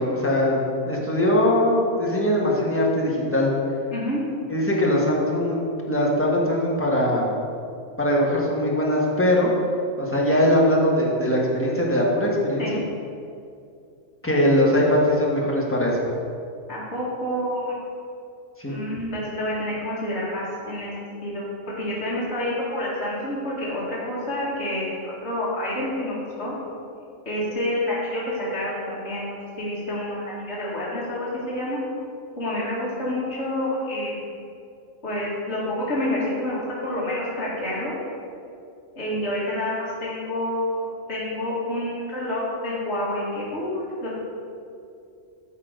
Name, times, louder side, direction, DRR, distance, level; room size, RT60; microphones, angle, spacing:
voice 1, 0.0-3.5 4.5-5.6 5.9-7.3 8.0-9.5 10.0-12.6 14.2-16.1 18.6-18.8, left 1 dB, 10° left, -3 dB, 1.4 m, -21 dB
voice 2, 3.9-4.2 12.6-12.7 16.7-17.8 18.7-20.9 21.2-21.4 21.8-26.5 27.3-28.2 28.5-29.3 29.6-31.8 32.3-34.2 35.0-35.6 35.9-38.0 39.0-44.1, left 1 dB, 55° left, -8 dB, 2.3 m, -28 dB
13.0 x 4.3 x 5.1 m, 2.4 s
omnidirectional pair, 1.4 m